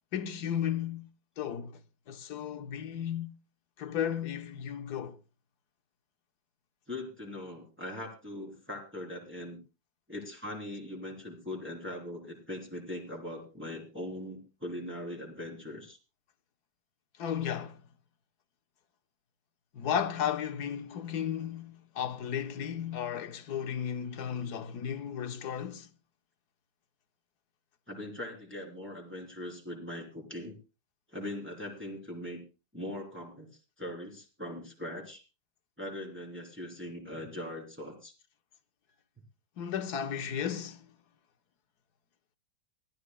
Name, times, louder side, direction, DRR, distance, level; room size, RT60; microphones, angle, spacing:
voice 1, 0.1-1.1 1.4-1.8 2.1-3.3 3.8-5.2 17.2-17.8 19.7-25.9 39.6-40.9, left 9 dB, 65° left, 1.5 m, -34 dB
voice 2, 6.9-9.6 10.1-16.0 27.9-30.6 31.1-32.4 32.7-35.2 35.8-38.1, left 1 dB, 5° right, 3.6 m, -41 dB
24.0 x 14.0 x 2.2 m
omnidirectional pair, 1.9 m